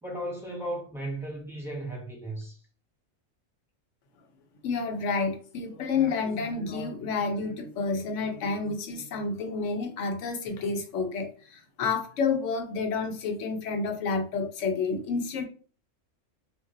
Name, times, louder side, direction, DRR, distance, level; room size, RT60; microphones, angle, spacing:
voice 1, 0.0-2.6, right 1 dB, ahead, 0.7 m, -35 dB
voice 2, 4.6-15.4, left 4 dB, 75° left, 1.0 m, -29 dB
2.3 x 2.2 x 3.7 m
omnidirectional pair, 1.3 m